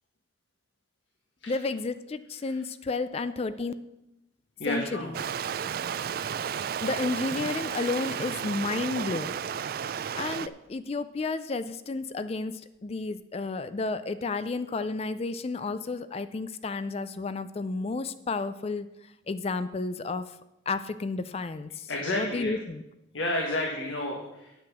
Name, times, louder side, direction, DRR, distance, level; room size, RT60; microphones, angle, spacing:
voice 1, 1.5-3.7 4.7-4.8 6.8-9.4 10.1-18.9 19.3-20.2 20.7-21.9 22.2-22.8, left 3 dB, 30° left, 13 dB, 0.4 m, -31 dB
voice 2, 4.6-5.1 21.9-22.6 23.1-24.5, left 1 dB, 80° left, 0 dB, 1.5 m, -31 dB
Stream, 5.1-10.5, right 8 dB, 50° right, 0.3 m, -33 dB
8.6 x 8.1 x 6.0 m, 0.92 s
head